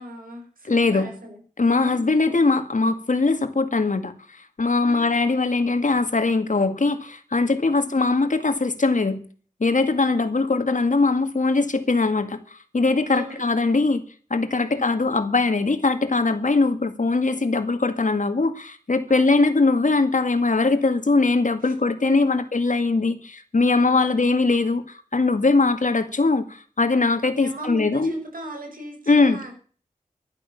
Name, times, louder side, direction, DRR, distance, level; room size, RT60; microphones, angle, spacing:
voice 1, 0.0-1.4 1.8-2.0 4.8-5.0 7.7-7.9 13.1-13.5 14.6-15.1 19.1-19.4 21.6-21.7 22.0-22.4 23.9-24.3 27.3-29.5, right 1 dB, 80° right, 3 dB, 5.4 m, -38 dB
voice 2, 0.7-1.1 1.6-4.1 4.6-9.2 9.6-14.0 14.3-28.1 29.1-29.4, left 3 dB, 60° left, 9 dB, 2.1 m, -21 dB
11.5 x 11.5 x 7.1 m, 0.42 s
wide cardioid pair, 50°, 14 cm